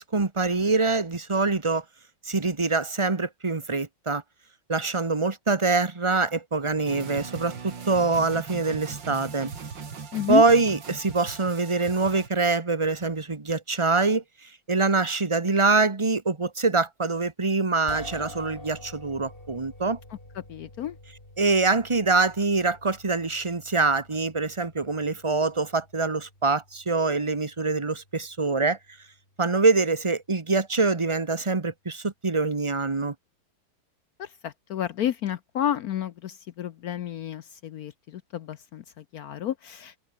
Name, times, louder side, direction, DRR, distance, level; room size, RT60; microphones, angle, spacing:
voice 1, 0.0-1.8 2.2-4.2 4.7-9.5 10.3-14.2 14.7-20.0 21.4-28.8 29.4-33.1, right 3 dB, 20° right, 0.8 m, -24 dB
sound 1, 6.9-12.3, right 5 dB, 60° right, 3.2 m, -39 dB
voice 2, 10.1-10.4 20.3-21.0 34.2-39.9, left 10 dB, 70° left, 0.9 m, -31 dB
sound 2, 17.9-30.2, left 1 dB, 25° left, 7.4 m, -48 dB
omnidirectional pair, 2.3 m